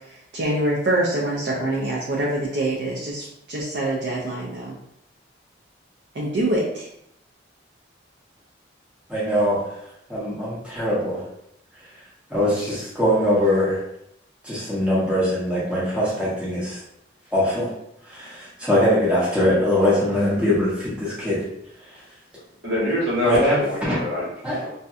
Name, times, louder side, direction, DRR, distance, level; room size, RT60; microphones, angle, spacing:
voice 1, 0.1-4.8 6.1-6.9, right 1 dB, 60° right, -4 dB, 0.5 m, -25 dB
voice 2, 9.1-9.6 10.1-11.2 12.3-13.8 14.4-16.8 17.3-17.7 18.1-21.4 23.2-24.0 24.4-24.6, left 1 dB, 5° right, -9 dB, 0.8 m, -22 dB
voice 3, 22.6-24.7, left 1 dB, 80° right, -8 dB, 1.4 m, -26 dB
2.7 x 2.1 x 2.4 m, 0.77 s
head